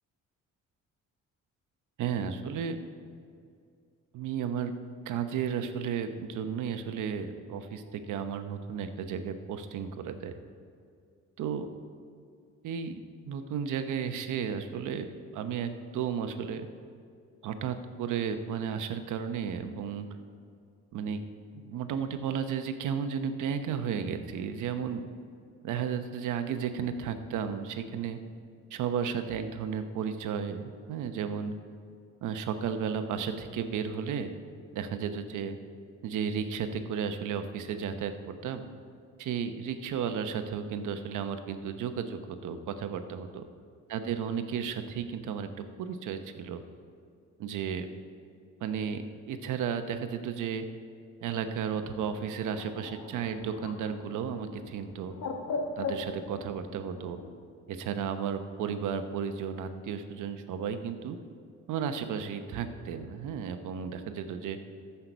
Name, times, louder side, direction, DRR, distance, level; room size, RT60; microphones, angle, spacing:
voice 1, 2.0-2.9 4.1-4.7 5.1-10.3 11.4-11.7 12.6-15.1 15.3-16.7 17.4-20.1 20.9-21.2 21.6-25.0 25.6-28.2 28.7-31.5 32.2-34.3 34.7-35.6 36.0-38.7 39.2-43.4 43.9-46.6 47.4-47.9 48.6-50.7 51.2-55.2 55.8-57.2 57.7-61.2 61.7-64.6, right 7 dB, 80° right, 8 dB, 0.9 m, -33 dB
Bird, 51.8-57.3, left 4 dB, 80° left, 1.4 m, -40 dB
14.0 x 5.8 x 6.7 m, 2.3 s
cardioid pair, 90°, 30 cm